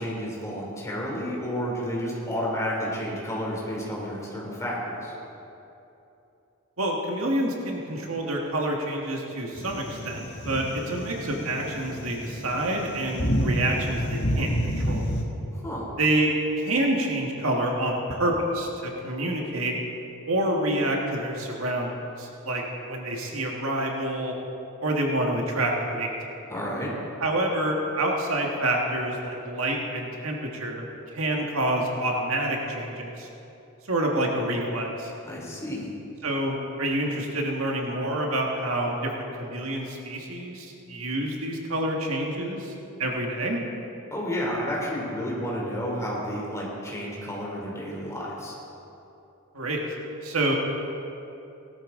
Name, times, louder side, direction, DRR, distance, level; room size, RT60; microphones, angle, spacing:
voice 1, 0.0-5.1 15.5-15.8 26.5-26.9 35.2-35.9 44.1-48.5, equal, 15° left, -4 dB, 3.2 m, -31 dB
voice 2, 6.8-15.1 16.0-19.8 20.3-22.6 22.9-24.3 24.8-26.1 27.2-30.8 31.1-33.3 33.9-35.1 36.2-42.7 43.0-43.6 49.5-49.8 50.2-50.5, right 1 dB, 75° right, 0 dB, 1.8 m, -27 dB
sound 1, 9.6-15.2, equal, 55° left, 1.6 m, -29 dB
18.0 x 12.5 x 3.9 m, 2.9 s
head